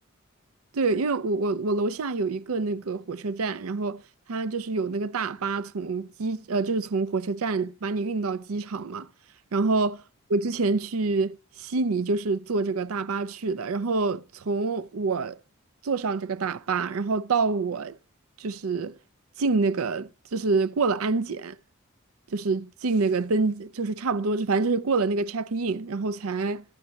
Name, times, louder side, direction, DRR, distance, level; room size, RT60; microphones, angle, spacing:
voice 1, 0.7-4.0 4.3-9.1 9.5-10.0 10.3-15.4 15.8-18.0 18.4-18.9 19.4-21.6 22.3-26.6, right 3 dB, 80° right, 0.5 m, -27 dB
14.0 x 10.5 x 3.2 m
head